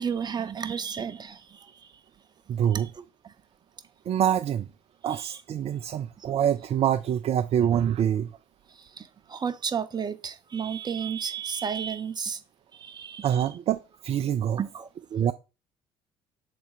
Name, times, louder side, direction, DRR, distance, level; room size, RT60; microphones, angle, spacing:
voice 1, 0.0-1.7 2.7-3.3 5.1-5.3 6.2-6.3 9.0-12.4 12.8-13.3 14.6-14.9, right 7 dB, 30° right, 0.9 m, -32 dB
voice 2, 2.5-2.9 4.1-4.7 5.0-8.3 13.2-14.6 15.1-15.3, right 9 dB, 45° right, 0.5 m, -25 dB
6.8 x 3.9 x 4.9 m
figure-of-eight pair, 55°, 14 cm